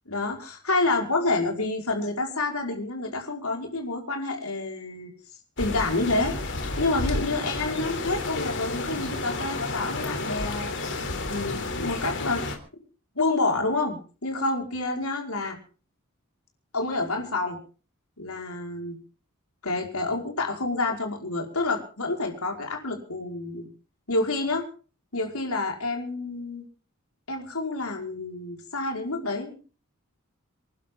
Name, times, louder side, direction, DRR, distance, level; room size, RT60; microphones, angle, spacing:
voice 1, 0.1-5.1 5.6-6.3 6.8-10.7 11.3-12.4 13.1-15.6 16.7-17.6 18.2-18.9 19.6-23.6 24.1-24.7 25.1-26.6 27.3-29.6, left 2 dB, 75° left, 2 dB, 5.2 m, -28 dB
sound 1, 5.6-12.6, left 2 dB, 60° left, 3.6 m, -31 dB
27.0 x 12.0 x 3.9 m, 0.37 s
head